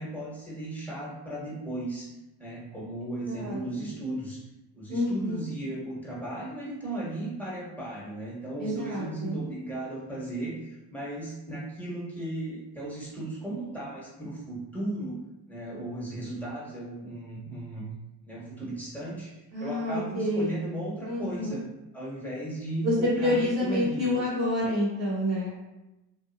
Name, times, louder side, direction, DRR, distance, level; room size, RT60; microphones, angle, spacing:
voice 1, 0.0-2.1 2.4-4.4 4.7-15.2 15.5-17.9 18.3-19.3 19.6-21.6 21.9-24.0, right 1 dB, 5° left, -6 dB, 1.1 m, -36 dB
voice 2, 3.3-3.9 4.9-5.4 8.6-9.4 19.5-20.6 21.1-21.6 22.8-25.5, left 1 dB, 40° right, -8 dB, 0.8 m, -28 dB
2.6 x 2.0 x 2.6 m, 0.97 s
supercardioid pair, 70°, 42 cm